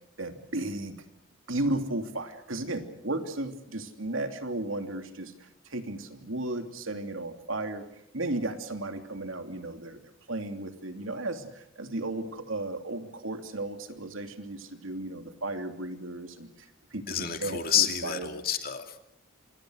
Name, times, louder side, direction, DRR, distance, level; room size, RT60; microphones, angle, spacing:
voice 1, 0.2-1.0 1.5-7.8 8.1-18.3, right 2 dB, 85° right, 7 dB, 2.9 m, -34 dB
voice 2, 17.1-19.1, left 9 dB, 45° left, 6 dB, 2.6 m, -29 dB
27.5 x 25.5 x 6.4 m, 0.72 s
head